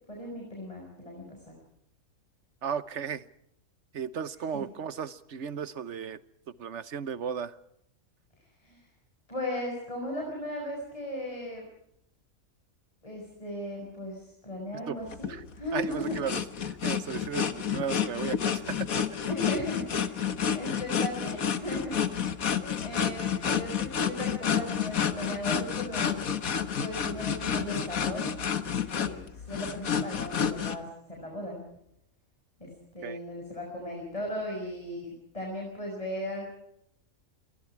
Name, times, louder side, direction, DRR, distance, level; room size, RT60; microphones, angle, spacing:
voice 1, 0.1-1.4 4.5-4.6 8.4-8.8 9.3-11.7 13.0-16.2 19.3-20.2 20.5-22.0 22.3-26.3 26.8-28.4 28.9-31.6 32.6-36.5, left 1 dB, 25° left, 0 dB, 6.2 m, -37 dB
voice 2, 2.6-3.2 3.9-6.2 6.5-7.6 14.7-15.0 15.3-15.4 15.7-16.4 16.7-19.0 22.2-22.3 33.0-33.2, right 7 dB, 55° right, 15 dB, 1.3 m, -35 dB
sound 1, 15.1-30.8, left 7 dB, 75° left, 1.8 m, -30 dB
27.5 x 22.5 x 4.8 m, 0.75 s
omnidirectional pair, 1.5 m